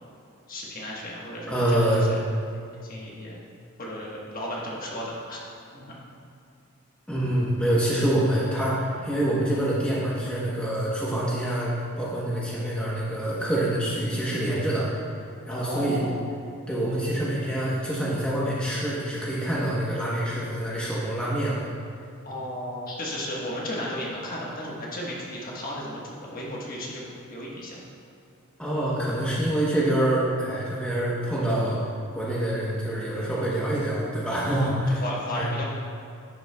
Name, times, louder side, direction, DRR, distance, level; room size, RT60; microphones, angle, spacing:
voice 1, 0.5-2.2 2.8-3.4 3.8-5.4 5.7-6.0 15.5-16.2 22.2-27.8 34.3-35.6, equal, 40° left, -4 dB, 1.3 m, -34 dB
voice 2, 1.5-2.0 7.1-14.9 15.5-16.0 16.7-21.7 28.6-31.8 32.1-35.0 35.3-35.5, right 1 dB, 5° left, -7 dB, 1.0 m, -26 dB
10.5 x 7.8 x 2.3 m, 2.5 s
head